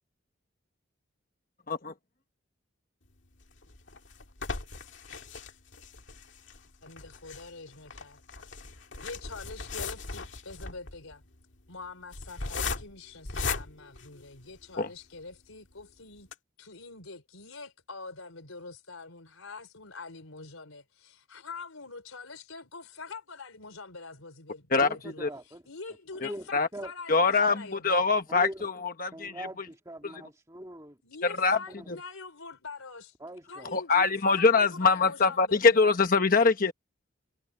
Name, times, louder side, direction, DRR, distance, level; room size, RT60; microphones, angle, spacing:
sound 1, 3.4-14.8 15.3-15.4 15.7-15.8 16.2-16.3, left 4 dB, 60° left, 2.2 m, -38 dB
voice 1, 6.8-8.7 9.0-11.2 11.7-16.3 16.6-25.2 25.7-28.0 31.0-33.2 33.5-35.8, left 4 dB, 90° left, 4.2 m, -45 dB
voice 2, 24.8-25.6 26.2-26.9 28.3-28.7 29.1-31.0 31.8-31.9 33.2-33.7, right 1 dB, 15° right, 2.2 m, -42 dB
voice 3, 27.1-29.3 31.2-31.6 33.7-36.7, left 4 dB, 40° left, 1.2 m, -23 dB
head